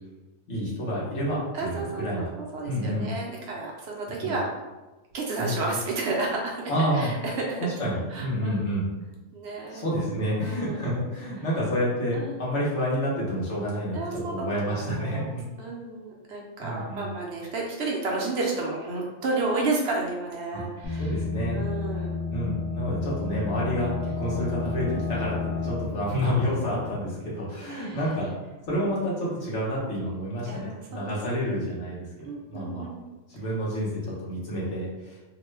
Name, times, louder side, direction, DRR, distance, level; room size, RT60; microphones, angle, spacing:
voice 1, 0.5-2.3 2.6-3.1 4.2-4.3 5.4-5.7 6.7-7.1 7.6-8.9 9.7-15.4 16.6-17.1 20.5-20.6 21.0-21.6 22.3-28.3 28.7-32.0 32.5-32.9 33.3-35.2, equal, 65° left, -7 dB, 1.2 m, -29 dB
voice 2, 1.5-4.4 5.1-7.6 8.1-8.9 9.3-9.8 10.4-10.9 12.1-12.3 13.9-21.1 21.5-22.2 23.4-23.6 27.7-28.0 30.5-31.1 32.2-33.0, right 3 dB, 60° right, -2 dB, 0.8 m, -32 dB
sound 1, 20.8-27.4, left 4 dB, 25° left, 0.6 m, -32 dB
2.9 x 2.2 x 3.1 m, 1.1 s
omnidirectional pair, 1.4 m